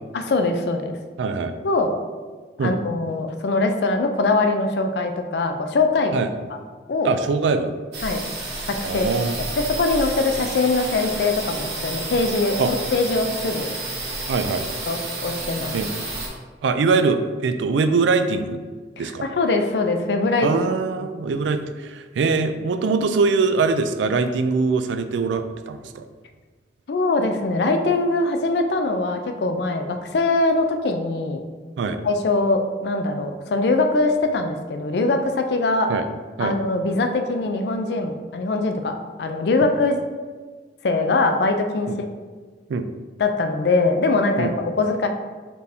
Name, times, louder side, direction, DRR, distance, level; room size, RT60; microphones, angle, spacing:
voice 1, 0.1-1.0 1.6-2.0 2.6-6.3 6.9-7.1 8.0-8.2 8.7-9.1 9.6-13.7 14.9-15.7 19.0-20.5 26.9-31.4 32.0-35.9 36.4-40.0 40.8-42.1 43.2-45.1, left 3 dB, 65° left, 6 dB, 0.4 m, -22 dB
voice 2, 1.2-1.5 2.6-2.7 6.1-6.3 7.0-7.7 8.8-9.4 12.6-12.7 14.3-14.6 15.7-15.9 16.6-18.6 19.0-19.3 20.4-26.0 31.8-32.0 35.9-36.1 36.4-36.6 41.9-42.0 42.7-42.9 44.4-44.5, right 4 dB, 85° right, 9 dB, 0.3 m, -22 dB
sound 1, 7.9-16.3, right 2 dB, 70° right, 1.2 m, -30 dB
4.2 x 2.7 x 3.4 m, 1.4 s
head